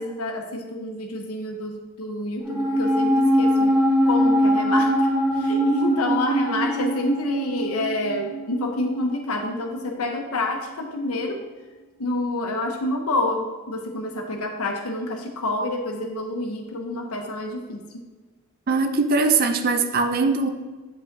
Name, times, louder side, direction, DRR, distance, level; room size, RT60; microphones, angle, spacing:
voice 1, 0.0-3.7 4.0-5.1 5.4-11.4 12.0-17.8, left 2 dB, 85° left, 2 dB, 0.9 m, -28 dB
sound 1, 2.4-9.0 9.3-9.4, equal, 10° right, 0.8 m, -22 dB
voice 2, 18.7-20.5, right 4 dB, 45° right, 7 dB, 0.4 m, -21 dB
8.3 x 5.1 x 2.6 m, 1.3 s
head